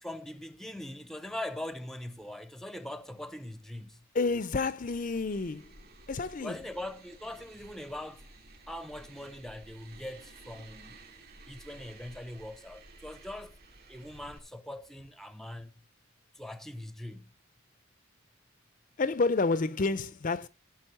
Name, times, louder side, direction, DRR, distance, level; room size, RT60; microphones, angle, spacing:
voice 1, 0.0-4.0 6.4-8.2 8.7-11.0 11.4-13.6 13.9-15.7 16.3-17.3, left 1 dB, ahead, 0.7 m, -41 dB
voice 2, 4.1-5.7 6.1-6.6 19.0-20.5, left 3 dB, 40° left, 0.5 m, -29 dB
sound 1, 4.9-14.4, right 2 dB, 50° right, 3.1 m, -54 dB
15.5 x 6.0 x 4.4 m
head